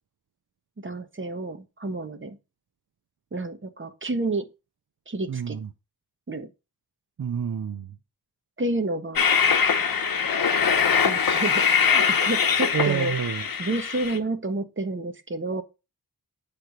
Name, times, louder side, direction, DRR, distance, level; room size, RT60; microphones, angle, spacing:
voice 1, 0.8-2.4 3.3-4.5 5.1-5.6 6.3-6.5 8.6-9.2 11.0-13.1 13.6-15.6, right 2 dB, 30° right, 1.1 m, -30 dB
voice 2, 5.3-5.7 7.2-8.0 12.7-13.5, right 8 dB, 55° right, 0.6 m, -28 dB
Train, 9.2-14.2, left 6 dB, 65° left, 0.9 m, -22 dB
7.7 x 3.4 x 5.8 m
cardioid pair, 50°, 38 cm